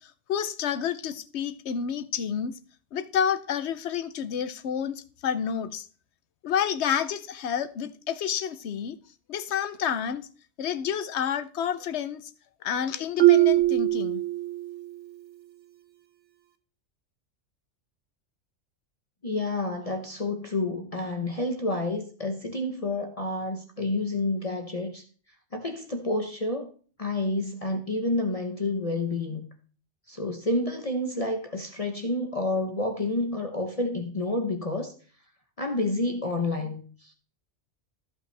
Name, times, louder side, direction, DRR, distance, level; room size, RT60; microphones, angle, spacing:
voice 1, 0.3-2.6 2.9-5.8 6.4-9.0 9.3-10.3 10.6-12.3 12.6-14.2, left 8 dB, 65° left, 1.0 m, -29 dB
Marimba xylophone, 13.2-14.9, right 15 dB, 65° right, 1.1 m, -21 dB
voice 2, 19.2-25.0 25.5-26.7 27.0-29.4 30.1-34.9 35.6-37.1, left 2 dB, 30° left, 0.9 m, -29 dB
14.0 x 5.6 x 3.3 m
omnidirectional pair, 1.3 m